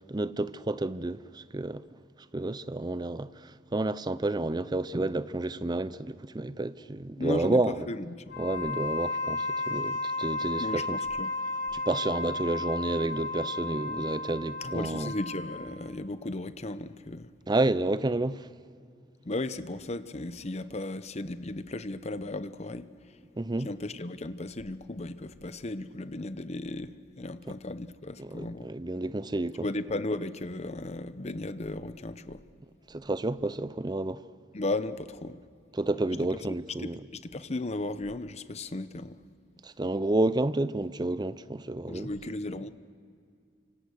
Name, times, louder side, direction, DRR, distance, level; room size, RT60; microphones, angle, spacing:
voice 1, 0.0-1.8 2.3-7.8 8.4-11.0 11.7-15.1 17.5-18.5 23.4-23.7 28.2-29.7 32.9-34.2 35.7-37.0 39.6-42.1, right 2 dB, 20° right, 0.5 m, -30 dB
voice 2, 7.2-8.4 10.6-11.3 14.6-17.3 19.2-23.2 23.6-28.7 29.6-32.4 34.5-35.4 36.8-39.2 41.9-42.7, left 2 dB, 35° left, 0.8 m, -35 dB
Wind instrument woodwind instrument, 8.2-15.7, left 2 dB, 60° left, 3.5 m, -33 dB
29.0 x 25.5 x 6.4 m
head